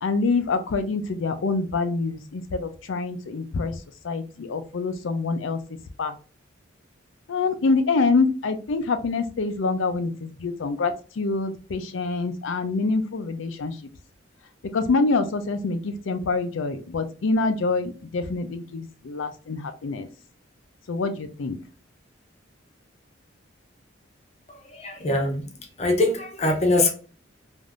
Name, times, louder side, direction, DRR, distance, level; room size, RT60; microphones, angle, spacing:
voice 1, 0.0-3.8 4.0-5.6 6.0-6.1 7.3-13.7 14.7-20.1 20.9-21.6, left 3 dB, 75° left, 0.5 m, -26 dB
voice 2, 24.8-25.4 25.8-26.9, left 2 dB, 35° left, 0.6 m, -22 dB
3.4 x 2.6 x 2.4 m
head